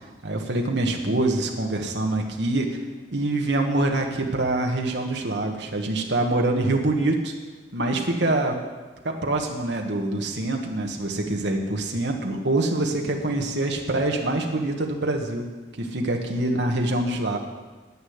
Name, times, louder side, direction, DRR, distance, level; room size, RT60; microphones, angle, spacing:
voice 1, 0.2-2.8 3.1-7.3 7.7-8.6 9.0-15.5 15.8-17.4, right 2 dB, 75° right, 1 dB, 1.4 m, -25 dB
10.0 x 9.5 x 8.1 m, 1.2 s
head